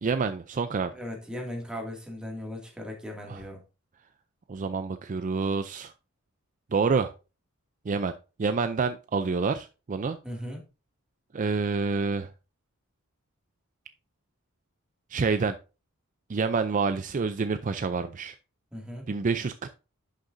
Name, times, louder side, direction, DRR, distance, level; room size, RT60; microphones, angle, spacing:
voice 1, 0.0-0.9 3.3-3.4 4.5-5.9 6.7-7.1 7.9-8.1 8.4-10.2 11.3-12.3 15.1-15.6 16.3-18.4 19.1-19.7, right 4 dB, 35° right, 0.4 m, -27 dB
voice 2, 0.9-3.6 10.2-10.6 18.7-19.1, left 1 dB, 5° right, 2.2 m, -37 dB
11.0 x 6.6 x 2.6 m
head